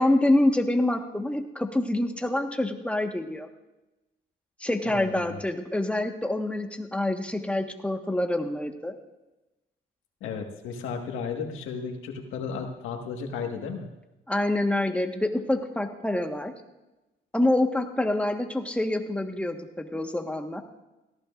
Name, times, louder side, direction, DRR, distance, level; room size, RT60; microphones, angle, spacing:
voice 1, 0.0-3.5 4.6-8.9 14.3-16.5 17.3-20.6, left 1 dB, 5° left, 4 dB, 1.4 m, -26 dB
voice 2, 4.8-5.4 10.2-13.9, left 5 dB, 90° left, 3 dB, 1.7 m, -34 dB
18.0 x 15.0 x 2.5 m, 1.0 s
cardioid pair, 90°, 20 cm